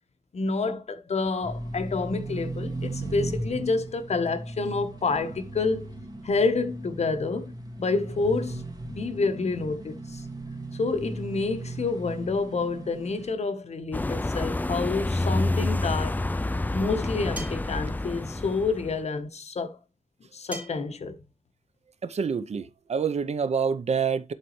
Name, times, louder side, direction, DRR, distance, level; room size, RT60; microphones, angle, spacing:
voice 1, 0.3-5.9 6.2-10.2 10.8-16.2 16.7-19.8 20.3-21.2, left 4 dB, 70° left, 1.1 m, -28 dB
sound 1, 1.4-13.3, right 2 dB, 35° right, 2.3 m, -37 dB
sound 2, 13.9-19.0, left 2 dB, 15° left, 0.4 m, -28 dB
sound 3, 17.4-17.7 20.5-20.9, equal, 10° right, 2.6 m, -38 dB
voice 2, 22.0-24.3, right 6 dB, 70° right, 0.6 m, -27 dB
11.0 x 4.1 x 3.1 m
wide cardioid pair, 115°, 12 cm